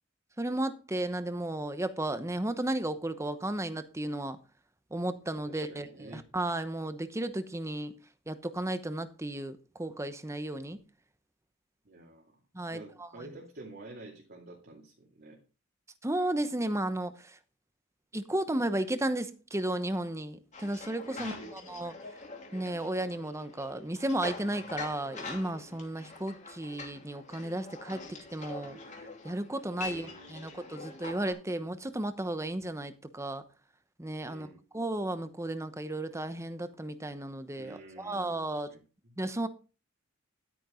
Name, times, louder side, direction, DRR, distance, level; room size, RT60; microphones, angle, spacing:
voice 1, 0.4-4.4 4.9-7.9 8.3-10.8 12.5-13.1 16.0-17.4 18.1-21.9 22.5-28.8 29.2-33.4 34.0-34.5 34.7-38.7 39.2-39.5, right 1 dB, 15° right, 1.0 m, -34 dB
voice 2, 5.5-6.2 11.8-12.4 12.7-15.4 21.2-21.6 29.7-31.6 34.2-34.6 37.6-39.2, right 2 dB, 50° right, 2.5 m, -50 dB
sound 1, 20.5-31.3, left 3 dB, 35° left, 2.8 m, -44 dB
12.5 x 9.1 x 3.8 m
head